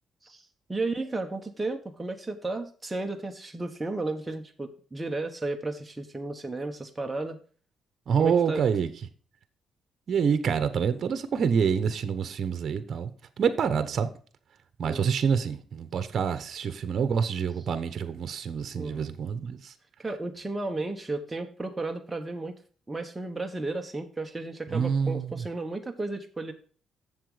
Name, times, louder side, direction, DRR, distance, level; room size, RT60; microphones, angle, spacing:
voice 1, 0.7-7.4 8.2-8.6 14.8-15.1 18.7-19.1 20.0-22.6 22.9-26.5, right 2 dB, 15° right, 1.2 m, -33 dB
voice 2, 8.1-8.9 10.1-13.1 13.4-14.1 14.8-19.7 24.7-25.4, right 6 dB, 55° right, 1.0 m, -27 dB
7.5 x 7.4 x 5.0 m
cardioid pair, 90°, 0 cm